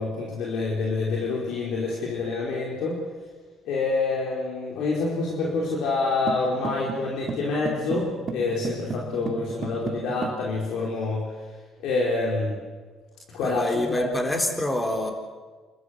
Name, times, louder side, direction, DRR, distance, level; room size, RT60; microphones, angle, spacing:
voice 1, 0.0-3.0 3.6-11.3 11.8-12.6 13.3-14.1, left 3 dB, 75° left, -3 dB, 4.7 m, -27 dB
sound 1, 6.3-10.4, right 4 dB, 40° right, 2.0 m, -34 dB
voice 2, 13.4-15.1, left 1 dB, 10° left, 3 dB, 4.0 m, -26 dB
29.5 x 13.5 x 8.3 m, 1.4 s
cardioid pair, 100°, 0 cm